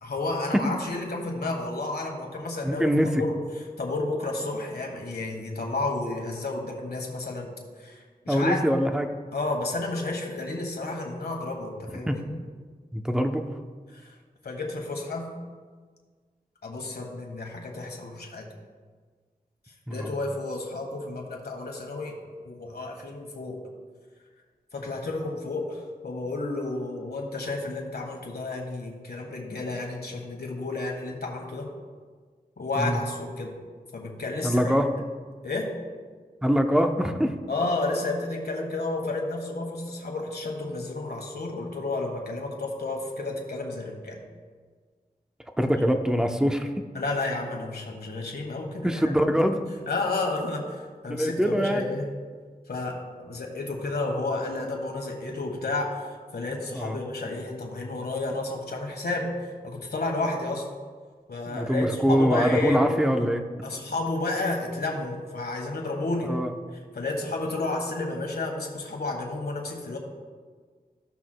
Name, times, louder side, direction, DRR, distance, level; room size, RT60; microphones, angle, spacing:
voice 1, 0.0-3.4 3.8-8.6 9.3-12.2 13.9-14.1 14.4-15.3 16.6-18.5 19.9-22.1 22.4-23.6 24.7-31.7 32.6-33.6 33.9-34.7 35.4-35.7 37.5-44.2 46.9-49.1 49.9-52.1 52.7-60.6 61.3-62.9 63.6-66.3 66.9-70.0, left 2 dB, 80° left, 1 dB, 1.5 m, -31 dB
voice 2, 2.6-3.1 8.3-9.1 12.1-12.2 12.9-13.5 19.9-20.1 32.8-33.0 34.4-34.9 36.4-37.3 45.6-46.7 48.8-49.6 51.1-51.8 56.7-57.0 61.5-63.4 66.2-66.5, equal, 5° right, 5 dB, 0.7 m, -23 dB
15.5 x 5.9 x 2.2 m, 1.5 s
cardioid pair, 50°, 16 cm